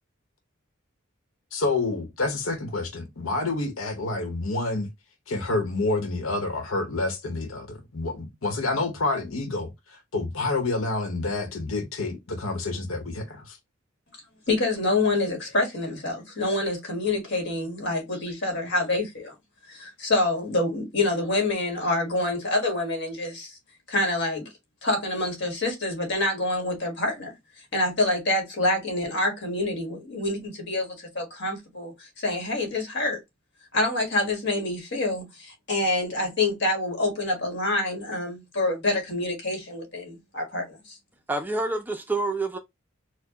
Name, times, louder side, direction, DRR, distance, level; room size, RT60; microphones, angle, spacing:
voice 1, 1.5-4.9 5.3-9.7 10.1-13.6, left 2 dB, 90° left, 1.0 m, -28 dB
voice 2, 14.5-19.3 19.7-23.6 23.9-24.5 24.8-27.3 27.7-33.2 33.7-41.0, left 2 dB, 60° left, 1.5 m, -27 dB
voice 3, 41.3-42.6, right 2 dB, 10° right, 0.4 m, -27 dB
4.4 x 2.1 x 2.9 m
head